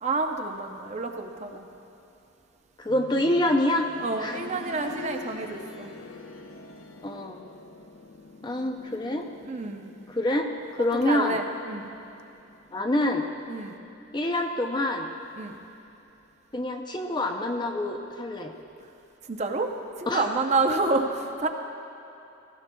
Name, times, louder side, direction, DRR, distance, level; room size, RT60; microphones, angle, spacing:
voice 1, 0.0-1.7 4.0-5.9 9.4-9.9 11.0-11.9 13.5-13.8 15.4-15.6 19.2-21.5, right 3 dB, 35° right, 4 dB, 0.6 m, -29 dB
voice 2, 2.8-3.9 4.2-4.4 7.0-7.4 8.4-9.3 10.1-11.4 12.7-13.3 14.1-15.1 16.5-18.5 20.1-20.3, left 1 dB, 20° left, 4 dB, 0.5 m, -26 dB
sound 1, 2.9-13.6 13.9-14.0 14.9-15.0, left 3 dB, 80° left, 0.7 m, -46 dB
16.5 x 15.5 x 2.3 m, 2.9 s
head